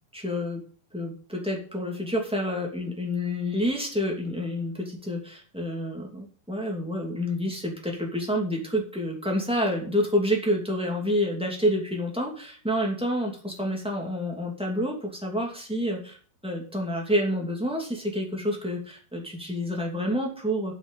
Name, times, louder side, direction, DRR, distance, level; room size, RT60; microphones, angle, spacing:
voice 1, 0.1-0.6 0.9-16.2 16.4-20.7, equal, ahead, -1 dB, 1.3 m, -28 dB
9.5 x 6.5 x 8.2 m, 0.43 s
omnidirectional pair, 5.1 m